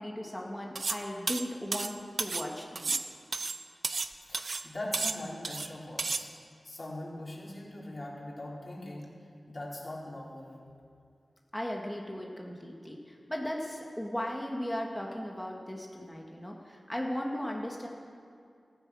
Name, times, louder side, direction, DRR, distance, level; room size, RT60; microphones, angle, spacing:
voice 1, 0.0-2.9 11.5-17.9, equal, 10° left, 0 dB, 2.0 m, -37 dB
sound 1, 0.8-1.0 1.3-2.5 2.8-4.1 4.3-4.7 4.9-5.7 6.0-6.2, right 3 dB, 60° right, 0.7 m, -32 dB
voice 2, 4.2-6.3 6.6-9.1 9.5-10.6, left 1 dB, 45° left, -5 dB, 4.9 m, -41 dB
15.0 x 14.5 x 6.4 m, 2.3 s
wide cardioid pair, 65°, 0 cm